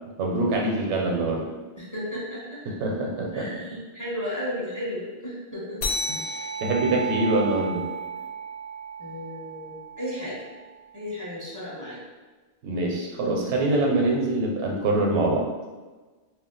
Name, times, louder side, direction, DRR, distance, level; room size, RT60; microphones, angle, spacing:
voice 1, 0.2-1.5 2.8-3.5 6.1-7.8 12.6-15.5, right 2 dB, 85° right, -1 dB, 0.9 m, -24 dB
voice 2, 1.8-2.6 3.3-5.8 9.0-10.4 10.9-12.0, left 1 dB, 20° left, -7 dB, 0.5 m, -34 dB
sound 1, 5.8-10.7, right 2 dB, 75° left, 0.8 m, -33 dB
2.4 x 2.2 x 3.8 m, 1.3 s
omnidirectional pair, 1.1 m